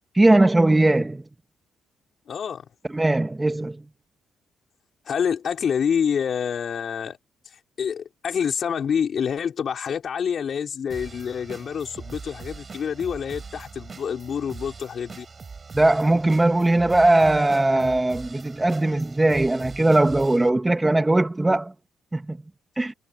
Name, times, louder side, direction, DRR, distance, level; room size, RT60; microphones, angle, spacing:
voice 1, 0.1-1.2 2.9-3.8 15.7-21.7 22.1-22.4 22.8-22.9, right 2 dB, 15° right, 1.7 m, -19 dB
voice 2, 2.3-2.6 5.1-7.2 7.8-15.3, left 7 dB, 55° left, 5.3 m, -27 dB
sound 1, 10.9-20.5, right 5 dB, 35° right, 8.0 m, -41 dB
cardioid pair, 90°, 0 cm